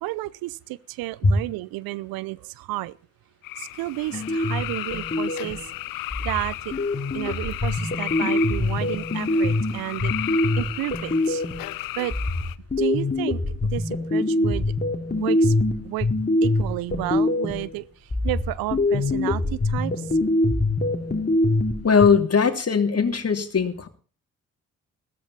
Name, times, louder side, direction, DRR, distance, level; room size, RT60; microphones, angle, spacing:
voice 1, 0.0-3.0 3.6-5.6 5.9-6.7 7.1-10.1 10.6-11.4 12.0-12.1 12.8-13.4 13.7-14.7 15.2-15.5 15.8-16.1 16.4-17.8 18.2-20.1, right 18 dB, 75° right, 0.7 m, -31 dB
sound 1, 3.4-12.6, left 16 dB, 70° left, 0.7 m, -34 dB
sound 2, 4.1-5.7 6.1-11.7 12.1-17.7 18.1-22.1, left 2 dB, 25° left, 2.9 m, -24 dB
voice 2, 21.8-23.9, left 6 dB, 40° left, 2.9 m, -20 dB
15.5 x 14.0 x 4.2 m
hypercardioid pair, 40°, 36 cm